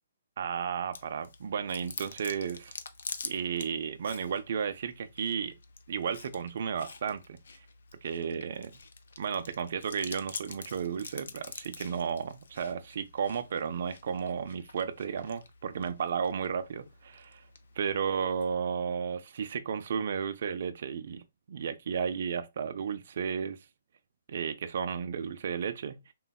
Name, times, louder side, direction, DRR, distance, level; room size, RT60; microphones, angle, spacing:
voice 1, 0.4-2.7 3.2-5.5 5.9-7.4 8.0-8.8 9.2-17.4 17.8-21.2 21.5-23.6 24.3-26.1, right 7 dB, 45° right, 0.3 m, -33 dB
Chewing mastication, 0.9-18.5, left 5 dB, 65° left, 0.4 m, -47 dB
3.8 x 2.1 x 2.2 m
hypercardioid pair, 175°, 0 cm